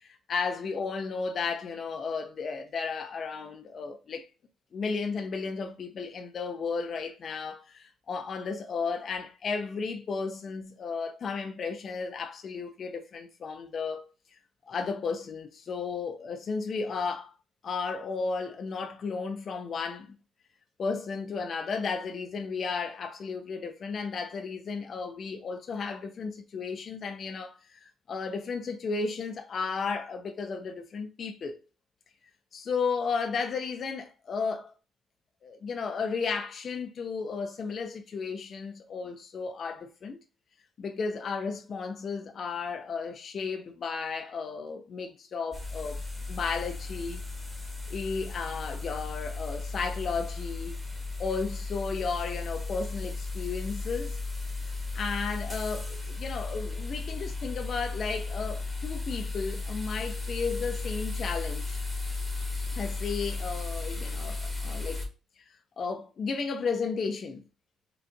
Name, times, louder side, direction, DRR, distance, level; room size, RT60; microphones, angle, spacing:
voice 1, 0.0-4.3 4.7-14.1 14.7-17.3 17.6-20.2 20.8-31.6 32.5-34.7 35.4-40.2 40.8-46.0 46.3-47.2 47.9-50.7 51.2-54.2 54.9-61.8 62.8-65.0 65.8-67.4, left 5 dB, 50° left, 0.5 m, -34 dB
sound 1, 45.5-65.1, left 3 dB, ahead, 1.0 m, -35 dB
3.9 x 2.4 x 2.4 m
cardioid pair, 90°, 0 cm